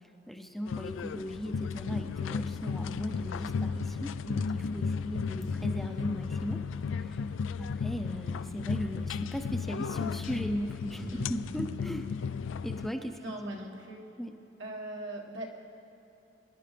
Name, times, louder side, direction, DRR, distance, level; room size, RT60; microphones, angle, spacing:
voice 1, 0.3-6.6 6.9-7.2 7.6-12.0 12.6-13.2 14.2-14.3, equal, ahead, 4 dB, 0.5 m, -37 dB
sound 1, 0.7-12.9, left 5 dB, 85° left, 0.4 m, -34 dB
voice 2, 1.7-2.1 10.9-11.3 13.2-14.1 14.6-15.5, right 1 dB, 85° right, -1 dB, 1.6 m, -40 dB
23.5 x 11.0 x 3.4 m, 2.9 s
head